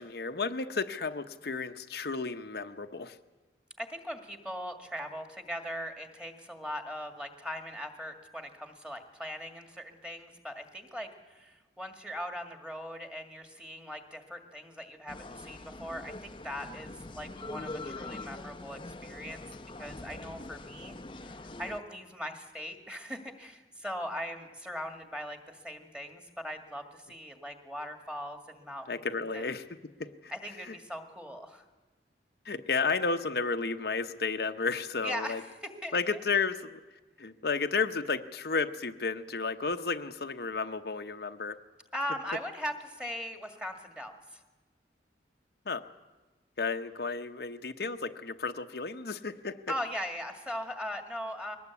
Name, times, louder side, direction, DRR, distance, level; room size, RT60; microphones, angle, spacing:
voice 1, 0.0-3.2 28.9-29.6 30.0-30.3 30.6-30.8 32.4-35.4 35.9-36.8 37.2-41.6 45.7-45.8 46.6-49.6, left 4 dB, 60° left, 7 dB, 0.8 m, -32 dB
voice 2, 3.8-19.4 19.8-29.1 29.3-29.4 30.3-31.6 35.0-35.4 35.8-36.0 41.9-44.4 49.7-51.6, equal, 5° right, 5 dB, 1.9 m, -40 dB
sound 1, 15.1-21.8, left 2 dB, 30° left, 0.7 m, -43 dB
22.0 x 19.0 x 8.3 m, 1.2 s
head